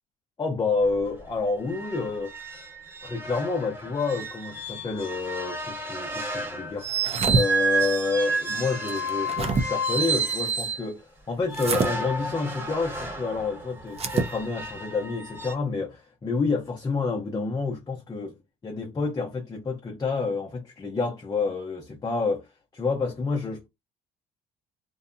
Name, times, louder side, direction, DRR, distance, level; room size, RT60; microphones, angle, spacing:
voice 1, 0.4-2.3 3.0-18.4 18.6-22.5 22.7-23.7, left 4 dB, 25° left, 0.6 m, -29 dB
sound 1, 0.8-0.9 1.3-1.4 1.7-10.8 11.5-15.5, right 3 dB, 15° right, 1.1 m, -31 dB
sound 2, 6.9-7.4 8.9-9.6 11.5-11.9 13.9-14.3, right 4 dB, 35° right, 0.5 m, -25 dB
2.6 x 2.1 x 2.5 m
cardioid pair, 110°, 17 cm